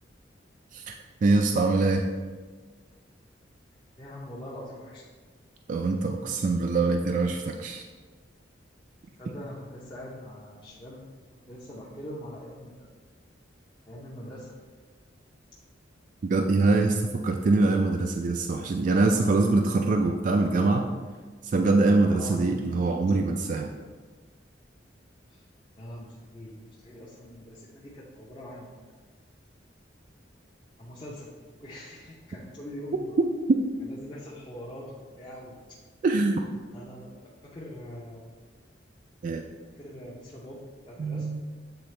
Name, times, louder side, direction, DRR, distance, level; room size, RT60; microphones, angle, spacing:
voice 1, 1.2-2.0 5.7-7.8 16.3-20.9 21.4-23.7 33.5-33.6 36.0-36.4 39.2-39.4 41.0-41.4, right 3 dB, 45° right, 3 dB, 0.3 m, -24 dB
voice 2, 4.0-5.0 9.2-11.0 11.3-12.9 13.9-14.6 22.0-22.4 25.3-25.4 25.7-28.8 30.8-31.3 31.6-33.2 33.8-35.8 36.7-37.1 37.4-38.3 39.7-41.3, equal, 25° left, -6 dB, 0.7 m, -43 dB
7.9 x 3.8 x 3.2 m, 1.4 s
head